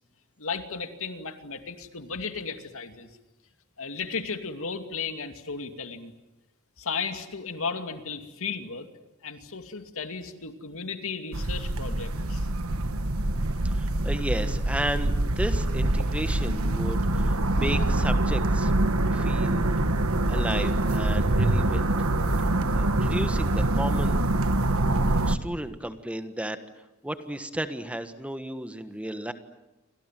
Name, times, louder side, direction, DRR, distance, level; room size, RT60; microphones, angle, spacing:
voice 1, 0.4-3.1 3.8-6.1 6.8-8.9 9.2-12.5, left 5 dB, 65° left, 7 dB, 2.5 m, -35 dB
sound 1, 11.3-25.4, right 1 dB, 70° right, 1.5 m, -25 dB
voice 2, 13.6-18.7 19.1-19.6 20.3-21.9 22.4-24.2 25.3-26.6 27.0-29.3, right 1 dB, 5° right, 9 dB, 1.4 m, -33 dB
30.0 x 25.5 x 7.7 m, 0.99 s
head